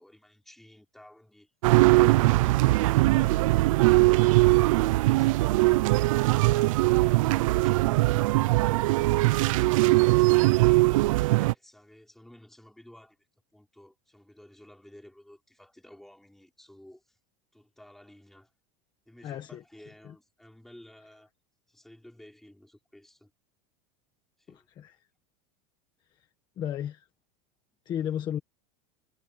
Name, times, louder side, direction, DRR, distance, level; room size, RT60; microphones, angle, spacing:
voice 1, 0.0-1.5 1.9-6.0 6.4-8.6 9.5-13.2 13.5-17.2 17.5-18.5 19.1-21.3 21.7-23.3 24.4-24.7, left 1 dB, ahead, 5.7 m, -53 dB
sound 1, 1.6-11.5, right 20 dB, 80° right, 0.5 m, -21 dB
voice 2, 19.2-19.6 20.0-20.1 24.5-25.0 26.6-27.1 27.8-28.4, left 10 dB, 25° left, 1.5 m, -34 dB
supercardioid pair, 170°, 17 cm